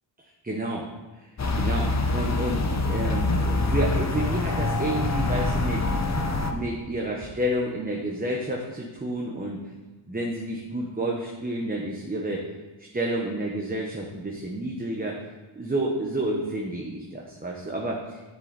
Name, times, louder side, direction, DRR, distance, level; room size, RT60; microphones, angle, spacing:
voice 1, 0.4-0.9 1.2-5.9 6.5-9.6 10.1-12.5 12.8-15.2 15.5-18.2, right 1 dB, 20° right, -1 dB, 1.0 m, -30 dB
sound 1, 1.4-6.5, left 2 dB, 35° left, 0.8 m, -25 dB
10.5 x 6.9 x 4.1 m, 1.2 s
wide cardioid pair, 110°, 49 cm